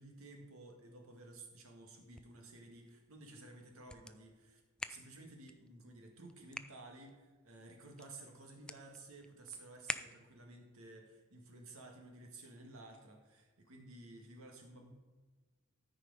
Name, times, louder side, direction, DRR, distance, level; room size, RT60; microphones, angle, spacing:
voice 1, 0.0-4.6 4.9-14.9, right 2 dB, 85° right, 2 dB, 1.8 m, -54 dB
sound 1, 1.9-10.6, left 1 dB, 5° left, 0.3 m, -50 dB
13.5 x 4.9 x 4.9 m, 1.3 s
head